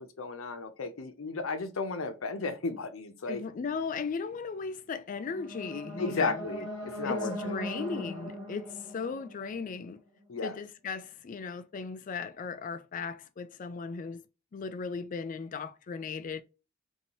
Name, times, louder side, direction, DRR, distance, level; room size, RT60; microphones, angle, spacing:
voice 1, 0.0-3.4 6.0-7.5 10.3-10.6, left 4 dB, 85° left, 0.6 m, -34 dB
voice 2, 3.3-6.5 7.0-10.0 10.4-14.2 14.5-16.4, left 5 dB, 40° left, 0.3 m, -37 dB
sound 1, 5.1-10.2, equal, 25° right, 1.5 m, -40 dB
2.7 x 2.7 x 3.0 m
head